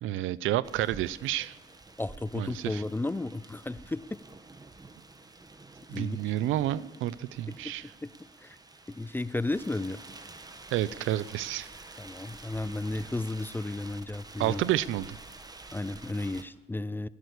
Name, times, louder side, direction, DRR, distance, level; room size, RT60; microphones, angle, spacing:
voice 1, 0.0-1.6 2.3-2.8 5.9-7.9 10.7-11.7 14.4-15.2, right 13 dB, 85° right, 19 dB, 0.5 m, -30 dB
sound 1, 0.6-16.4, right 3 dB, 20° right, 1.2 m, -49 dB
voice 2, 2.0-4.2 5.9-6.2 7.6-7.7 8.0-8.1 8.4-8.6 8.9-10.0 12.0-14.6 15.7-17.1, left 2 dB, 10° left, 19 dB, 0.4 m, -33 dB
11.0 x 10.5 x 8.3 m, 1.1 s
cardioid pair, 90°, 20 cm